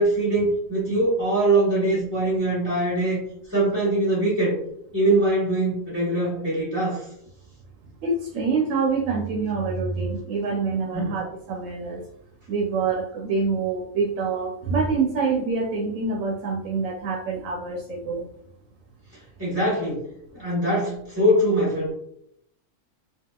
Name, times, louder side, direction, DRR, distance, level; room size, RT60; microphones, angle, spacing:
voice 1, 0.0-3.2 3.5-4.6 4.9-7.0 10.9-11.2 19.4-20.0 20.3-21.9, right 1 dB, 10° right, -7 dB, 1.0 m, -22 dB
voice 2, 8.0-12.0 12.5-18.2, right 4 dB, 75° right, 0 dB, 1.0 m, -26 dB
3.6 x 2.4 x 2.2 m, 0.74 s
omnidirectional pair, 1.4 m